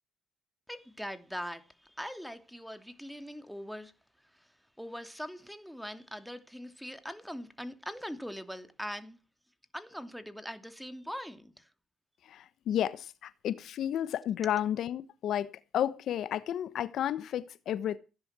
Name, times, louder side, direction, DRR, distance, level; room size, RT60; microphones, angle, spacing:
voice 1, 0.7-9.2 9.7-11.7, equal, ahead, 2.8 m, -42 dB
voice 2, 12.2-18.0, left 10 dB, 65° left, 1.1 m, -32 dB
16.5 x 10.5 x 6.1 m
cardioid pair, 85°, 0 cm